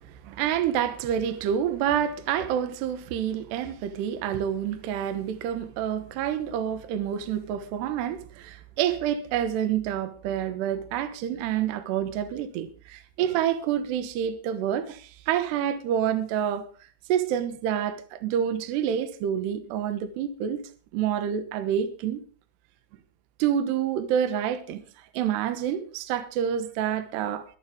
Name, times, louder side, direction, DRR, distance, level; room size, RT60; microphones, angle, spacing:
voice 1, 0.2-16.7 17.1-20.6 20.9-22.2 23.4-24.8 25.1-27.4, right 9 dB, 70° right, 2.9 m, -28 dB
23.5 x 8.9 x 3.8 m
omnidirectional pair, 5.8 m